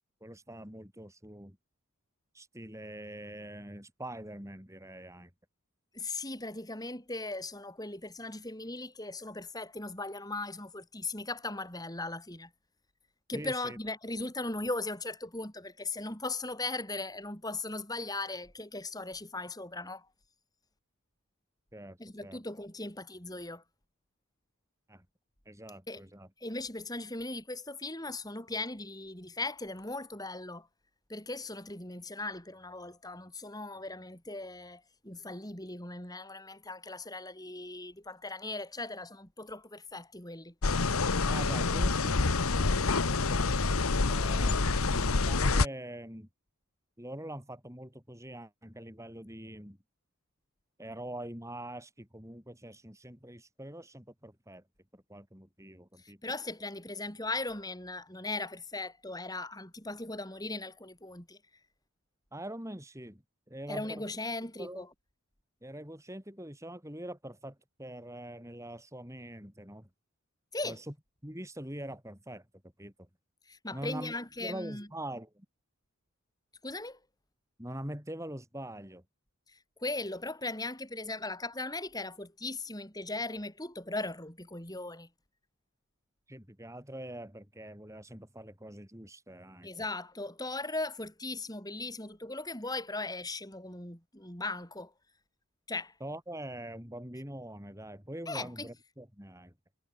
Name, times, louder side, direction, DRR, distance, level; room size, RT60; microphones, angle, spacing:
voice 1, 0.2-1.6 2.3-5.3 13.3-13.8 21.7-22.4 24.9-25.1 25.5-26.3 41.2-43.5 44.1-46.3 47.0-49.8 50.8-54.6 54.9-56.2 62.3-64.0 64.6-64.9 65.6-69.9 70.6-70.9 71.2-72.5 72.8-73.1 73.7-74.1 74.4-75.5 77.6-79.0 86.3-89.7 96.0-99.5, right 1 dB, 15° right, 7.3 m, -44 dB
voice 2, 5.9-12.5 13.3-20.1 22.0-23.6 25.9-26.0 26.4-30.7 31.1-40.5 56.0-61.4 63.7-64.9 70.5-70.8 73.5-74.9 76.6-77.0 79.5-85.1 89.6-94.9 95.7-95.9 98.3-98.7, left 2 dB, 15° left, 7.3 m, -38 dB
sound 1, 40.6-45.7, left 3 dB, 75° left, 1.2 m, -27 dB
head